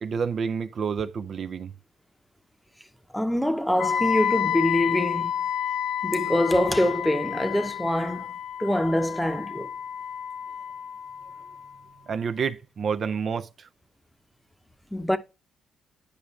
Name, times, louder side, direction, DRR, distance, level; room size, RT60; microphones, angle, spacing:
voice 1, 0.0-1.7 12.1-13.7, right 6 dB, 50° right, 0.4 m, -29 dB
voice 2, 3.1-5.3 6.0-8.3 8.6-9.7 14.9-15.2, left 1 dB, 5° left, 0.7 m, -24 dB
Wind instrument woodwind instrument, 3.8-11.7, left 9 dB, 75° left, 1.3 m, -30 dB
9.6 x 5.1 x 3.1 m
cardioid pair, 90°, 0 cm